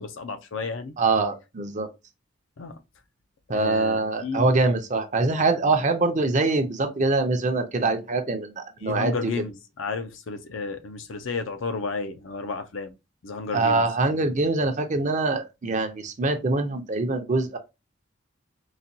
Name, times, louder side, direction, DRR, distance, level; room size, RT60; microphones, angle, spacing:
voice 1, 0.0-0.9 2.6-2.8 3.5-4.5 5.7-5.8 8.8-12.9 13.2-13.8, left 4 dB, 70° left, 0.5 m, -32 dB
voice 2, 1.0-1.9 3.5-9.3 13.5-17.6, right 3 dB, 40° right, 0.5 m, -24 dB
4.0 x 2.2 x 2.6 m
head